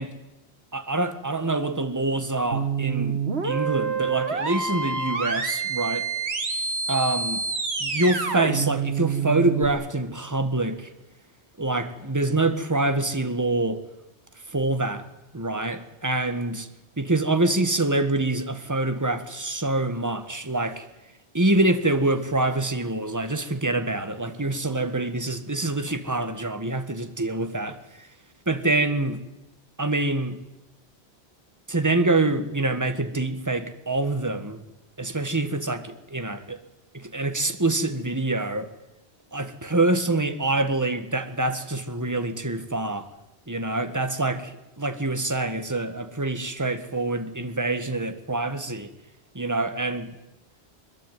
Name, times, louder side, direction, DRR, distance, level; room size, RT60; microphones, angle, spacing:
voice 1, 0.7-6.0 6.9-7.4 7.8-10.9 11.6-13.8 14.5-15.1 15.3-16.7 17.0-20.8 21.3-27.8 28.5-29.2 29.8-30.4 31.7-34.6 35.0-36.6 36.9-38.7 39.3-43.1 43.5-48.9 49.3-50.1, right 2 dB, 15° right, 9 dB, 1.7 m, -25 dB
sound 1, 2.5-9.7, right 5 dB, 70° right, 2.3 m, -27 dB
22.5 x 21.5 x 9.4 m, 0.96 s
omnidirectional pair, 1.1 m